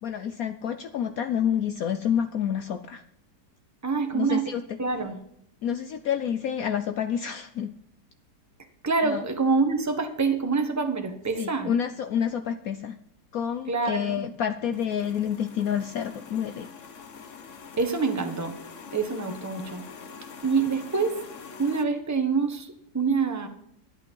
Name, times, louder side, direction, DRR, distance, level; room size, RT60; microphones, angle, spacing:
voice 1, 0.0-3.0 4.1-4.8 5.6-7.7 9.0-9.2 11.4-13.0 13.3-16.7, left 8 dB, 65° left, 9 dB, 1.0 m, -28 dB
voice 2, 3.8-4.5 4.8-5.2 8.8-11.7 13.7-14.2 17.8-18.5 18.9-19.8 20.4-21.2 21.6-23.5, right 4 dB, 10° right, 5 dB, 1.2 m, -26 dB
sound 1, 14.7-21.8, left 5 dB, 50° left, 1.3 m, -44 dB
11.5 x 11.5 x 5.5 m, 0.71 s
omnidirectional pair, 1.8 m